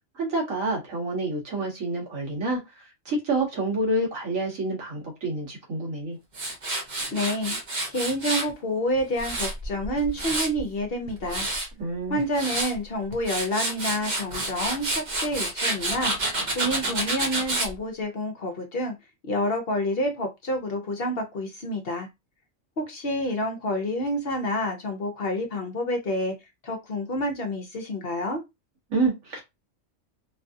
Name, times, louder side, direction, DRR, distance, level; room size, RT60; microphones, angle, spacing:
voice 1, 0.1-6.2 11.8-12.2 28.9-29.4, right 2 dB, 80° right, 1.6 m, -28 dB
Tools, 6.3-8.5 9.0-10.6 11.1-11.7 12.2-12.7 13.1-17.7, right 2 dB, 40° right, 0.8 m, -29 dB
voice 2, 7.1-7.6 7.9-11.5 12.1-18.9 19.2-22.1 22.8-26.4 26.6-28.4, left 1 dB, 55° left, 0.9 m, -28 dB
3.3 x 2.5 x 2.6 m
omnidirectional pair, 1.4 m